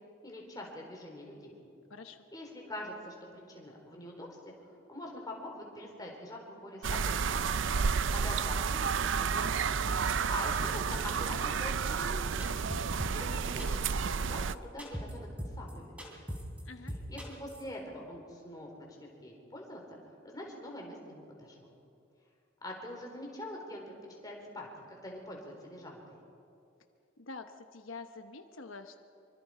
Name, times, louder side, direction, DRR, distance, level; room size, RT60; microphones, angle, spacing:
voice 1, 0.2-1.5 2.3-4.5 4.9-7.6 8.1-9.6 10.3-12.6 13.1-15.3 15.6-16.3 17.1-19.8 20.2-21.7 22.6-24.0 24.2-26.0, left 1 dB, 20° left, 0 dB, 4.1 m, -44 dB
voice 2, 1.9-2.3 16.7-16.9 27.2-29.0, left 3 dB, 85° left, 7 dB, 1.0 m, -46 dB
sound 1, 6.8-14.6, right 6 dB, 65° right, 0.5 m, -31 dB
sound 2, 12.4-13.3 13.6-13.9 14.2-14.3 14.5-14.6 14.8-15.1 15.4-15.7 16.0-16.6 16.9-17.6, equal, 5° right, 3.8 m, -39 dB
25.5 x 24.5 x 5.0 m, 2.6 s
head